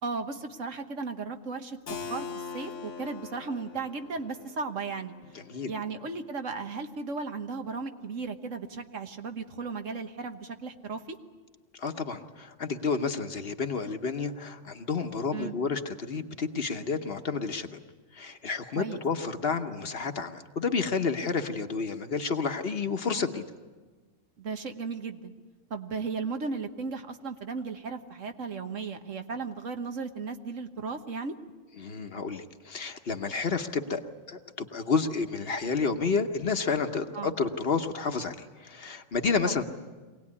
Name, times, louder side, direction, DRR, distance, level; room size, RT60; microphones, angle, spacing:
voice 1, 0.0-2.3 2.5-5.1 5.7-11.2 15.3-15.5 18.7-19.0 23.1-23.3 24.4-25.3 25.7-31.4 37.1-37.3 39.4-39.5, right 4 dB, 75° right, 6 dB, 1.6 m, -35 dB
Keyboard (musical), 1.9-7.4, left 5 dB, 70° left, 1.5 m, -43 dB
voice 2, 11.8-17.7 18.1-23.4 31.8-34.0 34.3-39.6, left 5 dB, 50° left, 7 dB, 1.2 m, -30 dB
23.5 x 18.0 x 9.7 m, 1.4 s
omnidirectional pair, 1.3 m